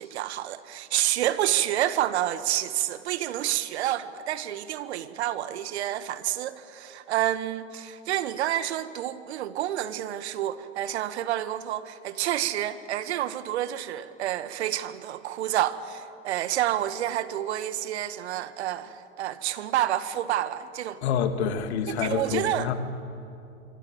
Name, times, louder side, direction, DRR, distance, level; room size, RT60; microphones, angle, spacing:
voice 1, 0.0-21.0 22.0-22.7, right 12 dB, 60° right, 1.5 m, -29 dB
voice 2, 21.0-22.7, left 7 dB, 60° left, 2.3 m, -27 dB
25.0 x 25.0 x 7.8 m
hypercardioid pair, 100°, 37 cm